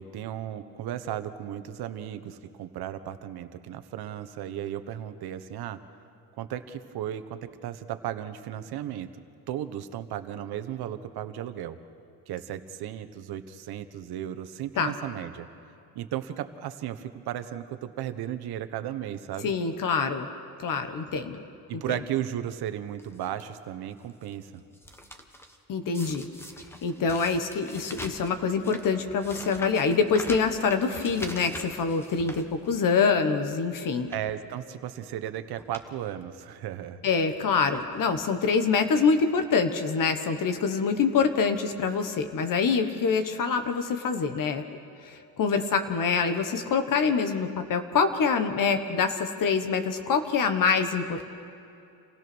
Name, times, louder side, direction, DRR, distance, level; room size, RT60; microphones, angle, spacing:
voice 1, 0.0-5.8 6.4-9.1 9.5-11.8 12.3-15.5 15.9-19.5 21.7-24.6 34.1-37.0, right 11 dB, 65° right, 10 dB, 1.3 m, -35 dB
voice 2, 19.4-20.3 20.6-21.4 25.7-26.3 26.8-34.1 37.0-44.6 45.0-51.2, left 5 dB, 50° left, 7 dB, 1.5 m, -25 dB
sound 1, 23.0-23.4 24.0-24.3 24.6-25.6 25.9-33.0 33.4-33.6 34.0-34.4 35.2-35.3 35.5-35.9 36.2-36.3 37.2-37.4 37.7-38.2 39.0-39.1 39.3-39.4, equal, 5° left, 1.3 m, -43 dB
27.5 x 17.0 x 6.3 m, 2.7 s
cardioid pair, 120°, 41 cm